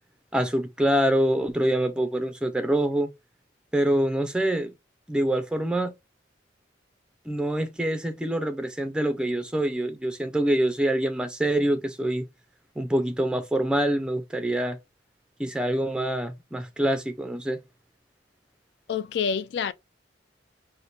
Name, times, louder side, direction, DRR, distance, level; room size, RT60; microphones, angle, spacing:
voice 1, 0.3-3.1 3.7-4.7 5.1-6.0 7.3-12.3 12.8-14.8 15.4-17.6, right 1 dB, 5° right, 0.4 m, -25 dB
voice 2, 18.9-19.7, left 6 dB, 65° left, 0.3 m, -27 dB
4.2 x 2.1 x 3.1 m
head